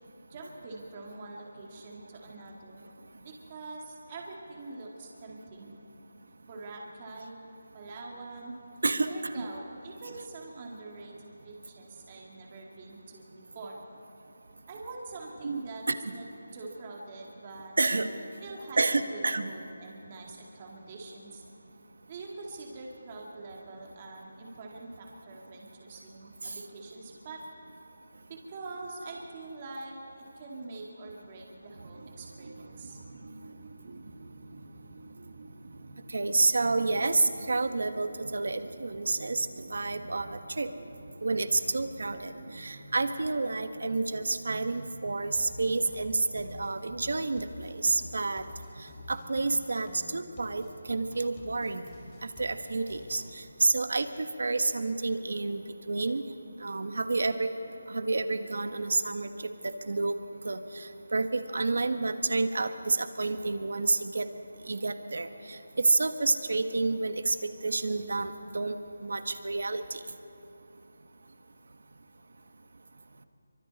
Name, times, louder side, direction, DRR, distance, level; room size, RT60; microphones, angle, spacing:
voice 1, 0.3-2.8 3.2-5.8 6.4-7.4 7.7-8.6 9.1-13.8 14.7-15.8 16.1-16.3 16.5-17.7 18.4-18.8 19.1-19.2 19.5-21.4 22.1-27.4 28.5-33.0, right 3 dB, 25° right, -1 dB, 2.3 m, -44 dB
voice 2, 8.8-9.5 15.4-15.6 15.9-16.1 17.8-18.1 18.8-19.5 26.4-26.5 36.1-40.7 41.2-48.4 48.8-51.9 52.4-56.2 56.6-57.5 57.9-59.3 59.6-60.1 60.4-64.2 64.6-67.3 67.6-70.0, right 3 dB, 65° right, 9 dB, 1.4 m, -29 dB
sound 1, 31.7-43.6, right 2 dB, 50° right, 1.5 m, -49 dB
sound 2, 45.4-53.4, left 2 dB, 20° left, 2.7 m, -49 dB
25.0 x 24.5 x 4.2 m, 2.8 s
figure-of-eight pair, 170°, 0 cm